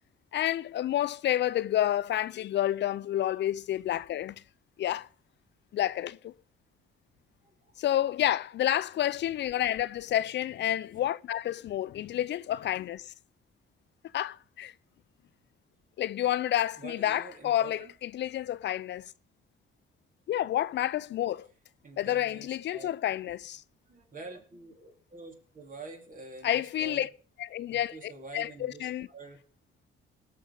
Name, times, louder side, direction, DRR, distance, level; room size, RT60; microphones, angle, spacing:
voice 1, 0.3-4.4 4.8-5.1 5.7-6.3 7.8-13.1 14.1-14.7 16.0-19.1 20.3-21.5 22.0-23.6 26.4-27.1 27.4-29.1, left 12 dB, 65° left, 0.5 m, -29 dB
voice 2, 16.8-17.9 21.8-22.9 23.2-23.3 23.9-27.1 27.7-29.4, right 3 dB, 40° right, 3.8 m, -47 dB
18.5 x 6.5 x 5.4 m
cardioid pair, 90°, 20 cm